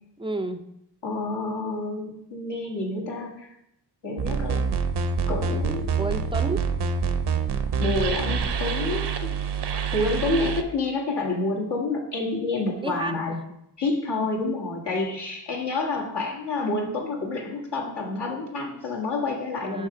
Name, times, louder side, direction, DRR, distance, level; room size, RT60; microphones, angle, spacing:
voice 1, 0.2-0.6 5.9-6.6 12.8-13.4 19.6-19.9, right 2 dB, 15° right, 9 dB, 0.4 m, -31 dB
voice 2, 1.0-3.5 4.0-4.7 5.3-6.0 7.8-9.3 9.7-13.4 13.8-19.9, left 2 dB, 70° left, -2 dB, 1.5 m, -28 dB
sound 1, 4.2-10.6, right 5 dB, 70° right, 0.6 m, -26 dB
5.7 x 3.4 x 5.8 m, 0.80 s
wide cardioid pair, 85°, 43 cm